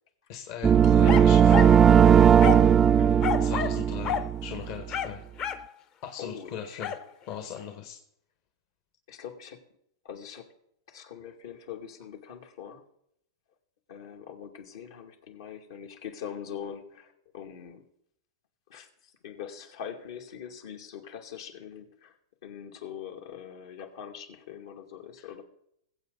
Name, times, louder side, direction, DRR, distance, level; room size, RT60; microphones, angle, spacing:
voice 1, 0.3-1.7 3.4-5.2 6.0-6.9 7.3-8.0 25.2-25.3, left 8 dB, 55° left, 4 dB, 1.8 m, -39 dB
sound 1, 0.6-4.6, right 8 dB, 20° right, 0.4 m, -18 dB
sound 2, 1.0-1.8 2.4-2.7 3.2-3.8 4.0-4.3 4.9-5.7 6.8-7.0, left 9 dB, 35° left, 0.8 m, -30 dB
voice 2, 6.2-6.8 9.1-9.7 10.0-10.5 10.9-12.8 13.9-17.8 18.7-18.9 19.2-22.1 22.4-25.4, left 8 dB, 70° left, 3 dB, 2.4 m, -42 dB
21.5 x 8.0 x 4.0 m, 0.74 s
hypercardioid pair, 130°, 2 cm